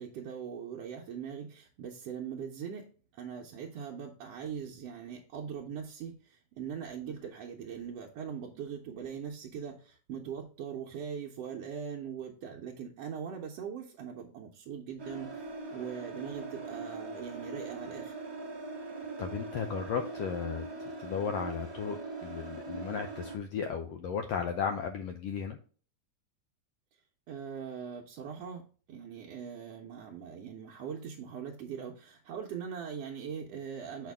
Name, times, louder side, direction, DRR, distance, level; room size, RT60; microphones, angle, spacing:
voice 1, 0.0-18.2 27.3-34.1, right 7 dB, 70° right, 1.7 m, -41 dB
sound 1, 15.0-23.4, right 3 dB, 30° right, 0.4 m, -41 dB
voice 2, 19.2-25.6, left 6 dB, 80° left, 1.4 m, -35 dB
7.6 x 5.0 x 3.4 m
omnidirectional pair, 3.5 m